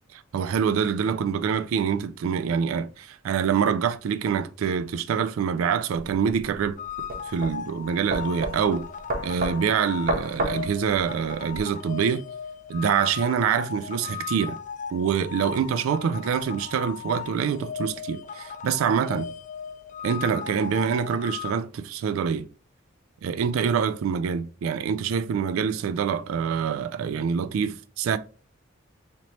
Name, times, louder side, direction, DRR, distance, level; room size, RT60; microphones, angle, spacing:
voice 1, 0.1-6.8 7.3-8.9 9.2-12.3 12.7-14.6 14.9-19.3 20.0-22.5 23.2-28.2, right 7 dB, 90° right, 0.3 m, -25 dB
sound 1, 5.9-11.6, right 1 dB, 45° right, 0.7 m, -32 dB
sound 2, 6.8-21.5, left 7 dB, 40° left, 0.4 m, -37 dB
3.1 x 2.9 x 4.0 m
head